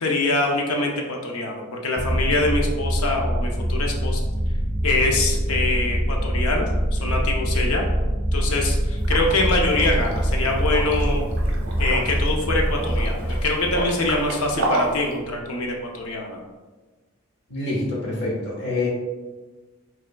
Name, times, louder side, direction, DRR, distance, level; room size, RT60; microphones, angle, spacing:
voice 1, 0.0-4.2 4.8-6.7 6.9-7.8 8.3-11.2 11.8-16.4, left 2 dB, 80° left, 1 dB, 0.6 m, -24 dB
sound 1, 2.0-14.8, equal, 5° left, 0.6 m, -24 dB
Liquid, 9.0-15.1, right 1 dB, 55° right, 0.8 m, -31 dB
voice 2, 17.5-18.9, left 2 dB, 50° left, -4 dB, 1.4 m, -26 dB
5.1 x 3.6 x 2.3 m, 1.3 s
head